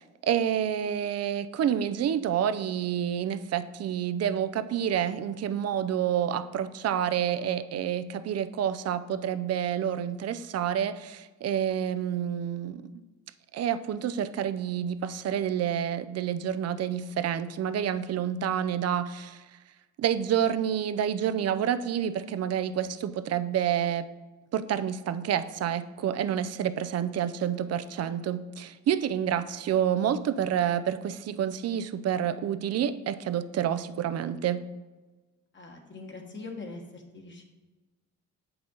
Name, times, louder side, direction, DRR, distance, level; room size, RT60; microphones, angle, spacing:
voice 1, 0.0-12.9 13.5-19.4 20.0-24.1 24.5-34.7, right 9 dB, 55° right, 12 dB, 0.5 m, -28 dB
voice 2, 35.5-37.4, left 3 dB, 40° left, 1 dB, 1.5 m, -42 dB
8.0 x 5.8 x 3.9 m, 1.2 s
cardioid pair, 90°, 30 cm